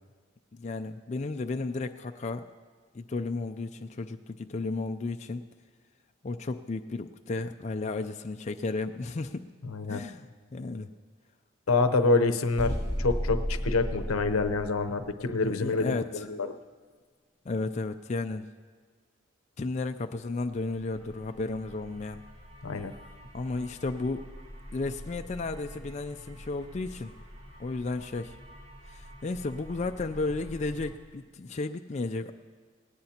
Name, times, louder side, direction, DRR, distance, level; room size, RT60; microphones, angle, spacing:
voice 1, 0.5-2.5 2.9-5.4 6.2-9.4 9.9-10.9 15.4-16.2 17.5-18.5 19.6-22.2 23.3-24.2 24.7-27.1 27.6-28.3 28.9-32.3, left 3 dB, 35° left, 7 dB, 0.4 m, -33 dB
voice 2, 9.7-10.0 11.7-16.5 22.6-22.9, left 3 dB, 90° left, 9 dB, 0.8 m, -27 dB
sound 1, 12.6-15.3, equal, 20° right, 1.9 m, -32 dB
sound 2, 20.4-31.0, equal, 70° right, 1.7 m, -47 dB
18.5 x 18.0 x 2.9 m, 1.5 s
head